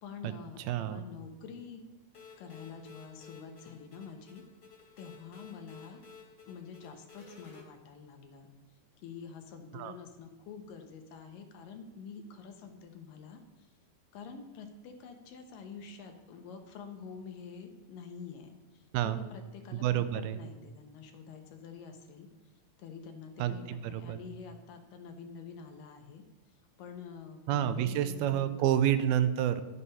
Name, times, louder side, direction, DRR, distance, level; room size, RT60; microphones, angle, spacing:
voice 1, 0.0-1.8 2.4-4.4 5.0-6.0 6.5-8.5 9.0-13.7 14.1-22.3 22.8-26.2 26.8-28.5, left 6 dB, 75° left, 5 dB, 2.4 m, -47 dB
voice 2, 0.7-1.0 9.7-9.9 18.9-19.2 19.7-20.4 23.4-24.2 27.5-29.6, right 11 dB, 90° right, 12 dB, 2.5 m, -29 dB
sound 1, 2.1-7.6, left 5 dB, 35° left, 2.2 m, -54 dB
11.0 x 6.8 x 5.5 m, 1.1 s
omnidirectional pair, 4.3 m